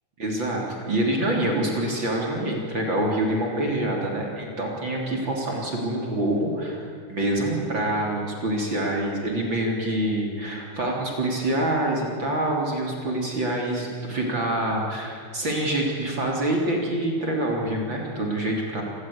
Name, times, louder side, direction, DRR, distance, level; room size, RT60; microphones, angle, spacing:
voice 1, 0.2-18.8, right 1 dB, 30° right, -1 dB, 3.2 m, -26 dB
28.0 x 15.0 x 8.7 m, 2.1 s
omnidirectional pair, 5.6 m